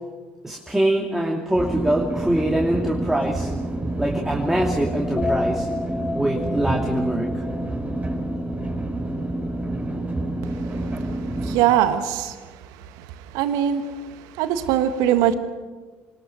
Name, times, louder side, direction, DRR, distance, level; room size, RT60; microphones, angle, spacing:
voice 1, 0.4-3.5 4.0-5.7 6.1-7.4, right 1 dB, 5° right, 0 dB, 2.6 m, -23 dB
sound 1, 1.5-11.6, right 2 dB, 20° right, 5.7 m, -28 dB
sound 2, 4.4-9.3, left 3 dB, 25° left, 1.9 m, -32 dB
voice 2, 11.5-12.3 13.3-13.8 14.4-15.3, right 11 dB, 65° right, 9 dB, 1.6 m, -20 dB
26.0 x 20.0 x 6.5 m, 1.4 s
hypercardioid pair, 55°, 6 cm